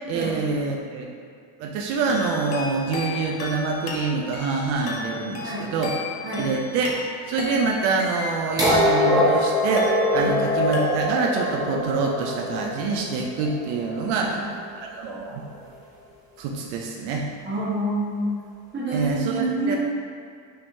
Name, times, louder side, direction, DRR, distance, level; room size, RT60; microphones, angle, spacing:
voice 1, 0.1-1.1 1.6-6.0 6.4-7.0 7.3-14.5 14.7-15.6 16.4-17.3 18.9-19.8, right 4 dB, 75° right, 0 dB, 0.6 m, -26 dB
sound 1, 2.1-9.3 9.8-10.4 10.7-11.4, left 4 dB, 65° left, 0.7 m, -34 dB
sound 2, 8.6-14.4 15.6-15.7, left 1 dB, 10° right, 0.6 m, -23 dB
voice 2, 17.4-18.3 18.7-19.8, right 2 dB, 25° right, -8 dB, 1.2 m, -27 dB
5.6 x 3.5 x 2.7 m, 2.2 s
cardioid pair, 165°, 46 cm